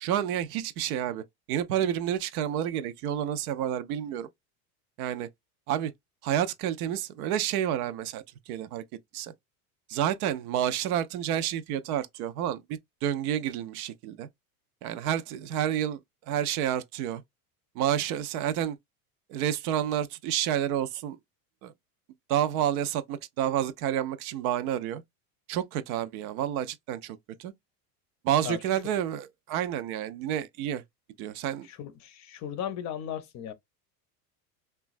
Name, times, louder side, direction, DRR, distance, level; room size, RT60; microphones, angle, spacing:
voice 1, 0.0-4.3 5.0-5.3 5.7-5.9 6.2-8.8 9.1-9.3 9.9-14.3 14.8-16.0 16.3-17.2 17.8-18.8 19.3-21.2 21.6-21.7 22.3-25.0 25.5-27.5 28.2-30.8 31.2-31.7, right 10 dB, 70° right, 0.6 m, -29 dB
voice 2, 31.6-33.5, left 9 dB, 40° left, 0.6 m, -36 dB
3.0 x 2.3 x 2.4 m
supercardioid pair, 110°, 45 cm